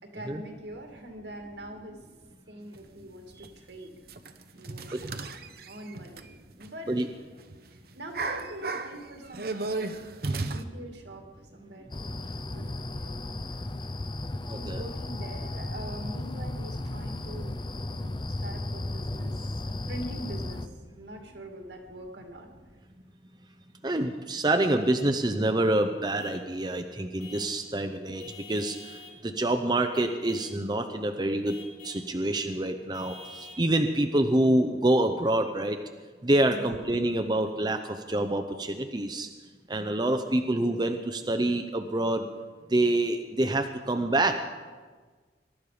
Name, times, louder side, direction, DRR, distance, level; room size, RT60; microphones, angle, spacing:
voice 1, 0.0-2.0 2.5-4.0 4.5-5.4 5.7-7.1 7.7-11.3 11.5-13.4 14.3-19.4 19.7-20.7 21.0-22.5 36.5-36.8, right 1 dB, 75° right, 3 dB, 2.3 m, -44 dB
sound 1, 2.7-2.8 3.4-3.5 4.1-7.0 7.3-7.6 7.9-10.6, right 3 dB, 55° right, 0.8 m, -34 dB
sound 2, 11.9-20.7, left 1 dB, 25° left, 0.6 m, -35 dB
voice 2, 14.5-14.8 23.8-28.2 28.5-31.6 31.8-35.8 36.2-39.3 39.7-42.2 42.7-44.4, right 1 dB, 25° right, 6 dB, 0.7 m, -26 dB
Vehicle horn car horn honking / Truck, 26.2-26.5 27.2-27.6 28.2-29.2 29.9-30.6 31.4-32.1 32.9-33.7, left 4 dB, 50° left, 5.0 m, -47 dB
22.5 x 12.0 x 5.0 m, 1.4 s
head